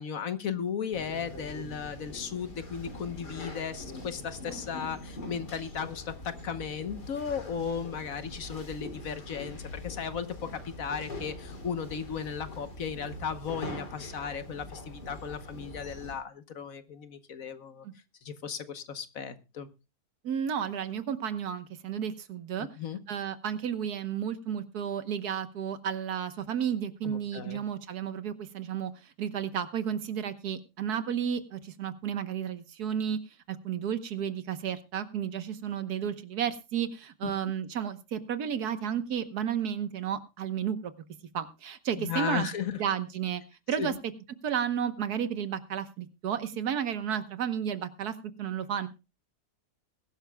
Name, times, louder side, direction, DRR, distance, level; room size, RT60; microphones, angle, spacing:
voice 1, 0.0-17.9 18.2-19.7 22.8-23.0 27.0-27.6 37.2-37.3 42.0-42.8 43.8-44.0, left 7 dB, 60° left, 11 dB, 1.3 m, -36 dB
sound 1, 0.9-16.1, left 1 dB, 80° left, 3.6 m, -43 dB
voice 2, 20.2-22.7 23.1-33.2 33.5-40.9 41.3-42.5 42.8-43.4 43.7-43.9 44.4-48.9, right 8 dB, 70° right, 12 dB, 1.6 m, -32 dB
21.0 x 12.0 x 2.3 m, 0.28 s
omnidirectional pair, 1.8 m